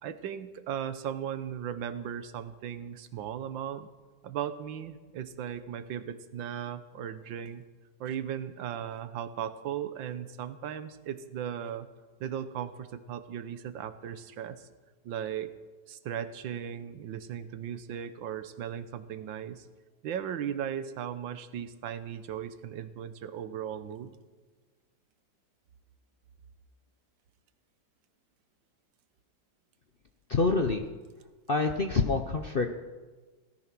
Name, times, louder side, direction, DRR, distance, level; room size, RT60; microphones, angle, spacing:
voice 1, 0.0-3.9 4.2-7.6 8.0-11.9 12.2-14.7 15.0-15.6 15.9-19.7 20.0-24.2, right 9 dB, 90° right, 12 dB, 1.7 m, -37 dB
voice 2, 30.3-30.9 31.5-32.7, left 3 dB, 50° left, 6 dB, 0.7 m, -26 dB
17.5 x 13.5 x 6.0 m, 1.3 s
omnidirectional pair, 2.0 m